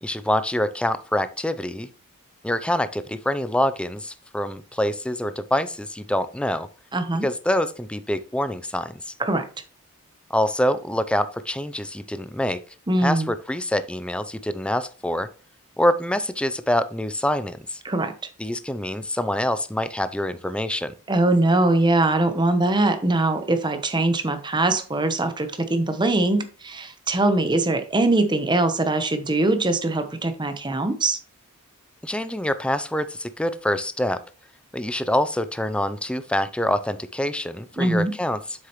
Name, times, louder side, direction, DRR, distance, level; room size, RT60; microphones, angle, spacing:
voice 1, 0.0-1.9 2.4-6.7 7.2-9.1 10.3-12.6 13.0-15.3 15.8-17.8 18.4-21.0 32.0-34.2 34.7-38.4, left 1 dB, 5° left, 12 dB, 0.4 m, -25 dB
voice 2, 6.9-7.3 9.2-9.5 12.9-13.3 17.8-18.1 21.1-31.2 37.8-38.1, right 2 dB, 20° right, 8 dB, 0.9 m, -22 dB
7.6 x 6.4 x 3.0 m, 0.38 s
head